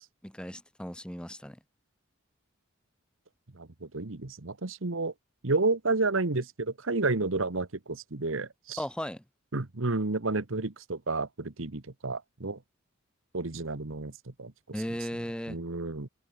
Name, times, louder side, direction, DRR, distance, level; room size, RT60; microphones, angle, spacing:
voice 1, 0.2-1.6 8.8-9.2 14.7-15.6, equal, 5° left, 1.3 m, -36 dB
voice 2, 3.6-5.1 5.4-8.8 9.5-12.6 13.3-14.1 14.4-14.5 15.5-16.1, right 3 dB, 90° right, 1.4 m, -31 dB
head